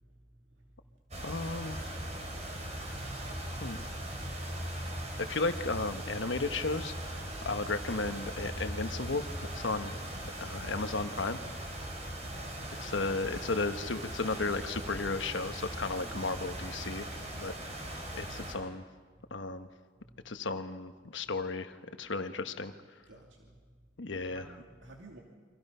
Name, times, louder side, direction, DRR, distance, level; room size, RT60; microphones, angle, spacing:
sound 1, 1.1-18.5, right 1 dB, 35° right, 4.3 m, -40 dB
voice 1, 1.2-1.9 3.6-3.8 5.2-6.9 7.4-9.2 9.5-9.9 10.4-11.7 12.7-17.1 17.3-18.8 19.3-19.7 20.2-22.7 24.0-24.4, left 3 dB, 85° left, 8 dB, 1.2 m, -34 dB
voice 2, 16.0-16.5 23.1-23.5 24.3-25.2, right 2 dB, 85° right, 0 dB, 2.6 m, -52 dB
29.0 x 25.0 x 5.6 m, 1.5 s
head